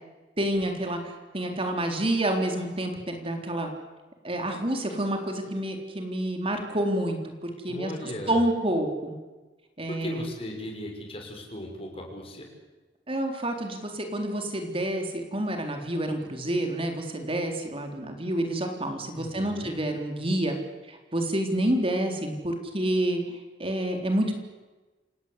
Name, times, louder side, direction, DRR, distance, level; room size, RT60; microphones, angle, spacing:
voice 1, 0.4-3.7 4.2-7.9 8.3-9.1 9.8-10.3 13.1-20.6 20.9-24.4, right 1 dB, 30° right, 4 dB, 3.9 m, -28 dB
voice 2, 7.7-8.4 9.9-12.5 19.1-19.7, left 1 dB, 30° left, 2 dB, 6.6 m, -37 dB
28.5 x 18.0 x 8.4 m, 1.2 s
head